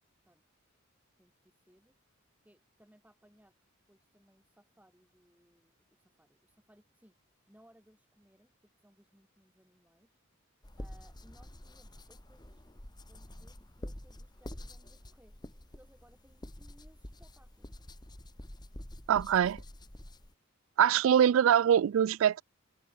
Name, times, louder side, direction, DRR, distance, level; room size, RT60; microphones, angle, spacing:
voice 1, 1.2-1.9 2.4-3.5 3.9-7.1 7.5-10.2 10.8-12.6 13.1-15.3 15.7-17.8, right 1 dB, 5° right, 7.9 m, -64 dB
sound 1, 10.6-20.3, left 1 dB, 20° left, 2.0 m, -48 dB
voice 2, 19.1-19.6 20.8-22.4, right 9 dB, 70° right, 0.3 m, -23 dB
head